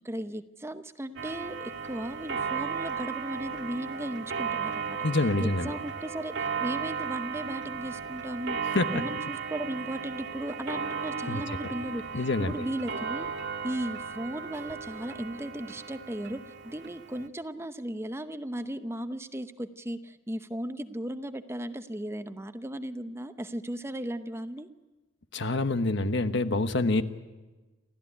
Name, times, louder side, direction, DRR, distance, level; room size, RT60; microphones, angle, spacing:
voice 1, 0.0-5.0 5.4-8.6 8.9-12.0 12.4-13.3 13.6-24.7, right 1 dB, 15° right, 10 dB, 0.8 m, -36 dB
Clock, 1.2-17.3, right 6 dB, 65° right, 1.8 m, -35 dB
voice 2, 5.0-5.8 8.7-9.0 11.3-11.4 12.1-12.5 25.3-27.0, left 2 dB, 65° left, 11 dB, 1.1 m, -26 dB
28.5 x 13.5 x 9.9 m, 1.2 s
head